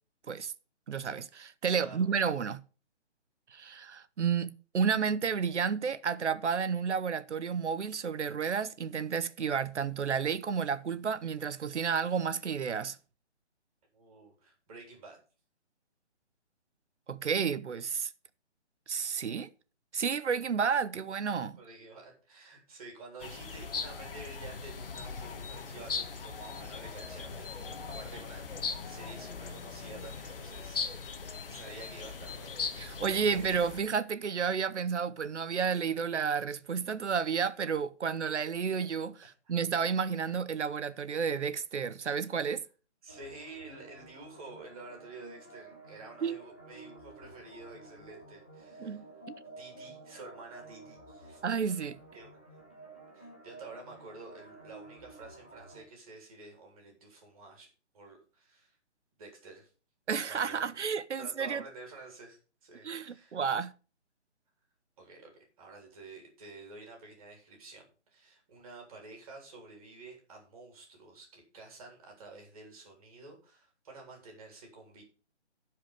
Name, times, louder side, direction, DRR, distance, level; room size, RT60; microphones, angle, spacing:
voice 1, 0.9-2.6 3.5-13.0 17.1-18.1 18.9-19.5 19.9-21.6 32.8-39.2 39.5-42.6 46.2-46.4 48.8-49.0 51.4-52.0 60.1-61.6 62.8-63.7, right 6 dB, 75° right, 1.0 m, -31 dB
voice 2, 1.7-2.3 13.9-15.2 21.6-33.1 33.4-33.5 39.2-39.6 43.0-49.1 49.6-51.4 52.1-52.5 53.1-57.7 57.9-58.8 59.2-59.7 60.2-60.8 61.2-63.5 65.0-75.0, right 3 dB, 30° right, 3.5 m, -50 dB
sound 1, 23.2-33.8, left 5 dB, 50° left, 1.4 m, -39 dB
sound 2, 43.1-55.8, right 2 dB, 10° left, 0.5 m, -52 dB
14.5 x 5.0 x 5.1 m
hypercardioid pair, 165°, 35 cm